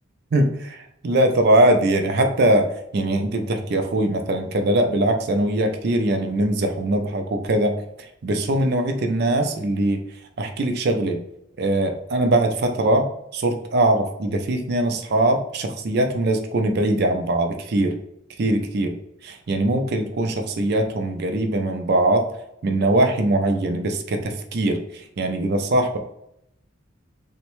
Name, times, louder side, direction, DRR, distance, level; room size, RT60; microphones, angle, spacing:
voice 1, 0.3-7.8 8.2-10.0 10.4-11.2 11.6-13.0 13.3-17.9 18.4-18.9 19.2-22.2 22.6-26.0, right 1 dB, 50° right, 5 dB, 0.4 m, -21 dB
3.4 x 2.1 x 3.0 m, 0.80 s
head